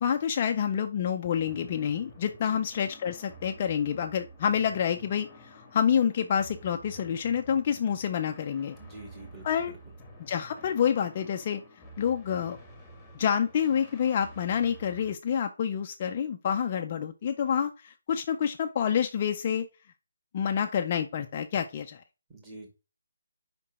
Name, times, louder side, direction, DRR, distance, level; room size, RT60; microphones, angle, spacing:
voice 1, 0.0-8.7 9.4-9.7 10.2-11.6 12.0-12.6 13.1-19.7 20.3-22.0, left 8 dB, 30° left, 5 dB, 0.5 m, -28 dB
sound 1, 1.3-15.1, right 1 dB, 5° left, 1.5 m, -50 dB
voice 2, 8.8-9.8 22.3-22.7, right 2 dB, 15° right, -1 dB, 2.3 m, -47 dB
5.1 x 4.5 x 6.0 m, 0.31 s
hypercardioid pair, 165°, 0 cm